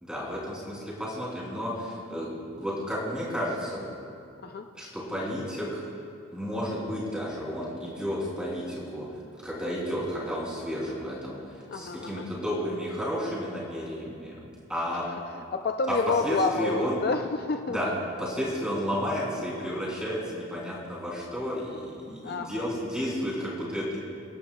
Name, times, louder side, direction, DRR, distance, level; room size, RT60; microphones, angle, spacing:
voice 1, 0.0-3.8 4.8-5.8 6.3-9.1 9.3-14.4 14.7-15.0 15.9-16.0 16.2-17.0 17.7-17.9 18.2-24.0, equal, 5° right, -5 dB, 2.9 m, -32 dB
voice 2, 11.7-12.3 14.9-17.8 22.2-22.7, left 3 dB, 45° left, 5 dB, 0.4 m, -29 dB
27.0 x 11.0 x 2.3 m, 2.5 s
head